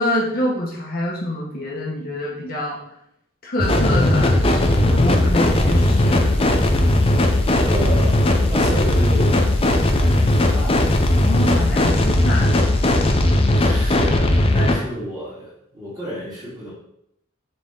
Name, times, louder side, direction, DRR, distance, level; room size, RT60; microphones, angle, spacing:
voice 1, 0.0-2.8 3.4-6.6 11.1-12.5, left 1 dB, 45° left, -3 dB, 1.4 m, -26 dB
sound 1, 3.6-14.8, left 1 dB, 25° left, 0.5 m, -17 dB
voice 2, 7.6-8.2 8.5-9.4 10.0-10.8 13.5-16.7, equal, 20° right, -7 dB, 2.3 m, -30 dB
6.7 x 4.1 x 3.8 m, 0.76 s
head